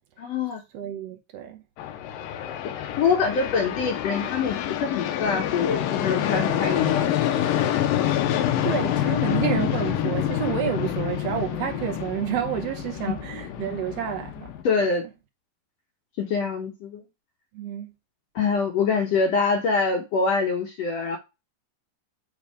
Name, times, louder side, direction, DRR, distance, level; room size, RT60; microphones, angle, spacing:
voice 1, 0.2-0.6 2.7-7.1 14.6-15.0 16.2-17.0 18.4-21.2, left 5 dB, 70° left, 1.7 m, -25 dB
voice 2, 0.7-1.6 8.6-14.5 14.8-14.9 17.5-17.9, right 9 dB, 75° right, 1.5 m, -29 dB
sound 1, 1.8-14.6, left 11 dB, 85° left, 2.5 m, -27 dB
sound 2, 6.0-9.3, right 7 dB, 60° right, 2.5 m, -43 dB
8.7 x 3.5 x 4.7 m
omnidirectional pair, 3.9 m